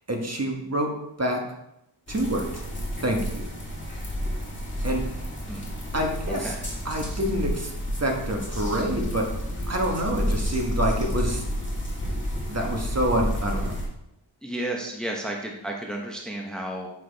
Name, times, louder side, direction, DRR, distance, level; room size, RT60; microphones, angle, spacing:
voice 1, 0.1-1.4 2.1-2.5 3.0-3.4 4.8-5.1 5.9-6.5 6.8-7.7 8.0-9.3 9.7-11.4 12.5-13.8, equal, 30° right, 1 dB, 1.4 m, -27 dB
sound 1, 2.1-13.9, equal, 25° left, 2.4 m, -30 dB
voice 2, 6.2-6.6 14.4-16.9, right 1 dB, ahead, 0 dB, 1.0 m, -32 dB
7.3 x 6.0 x 3.5 m, 0.82 s
wide cardioid pair, 80°, 49 cm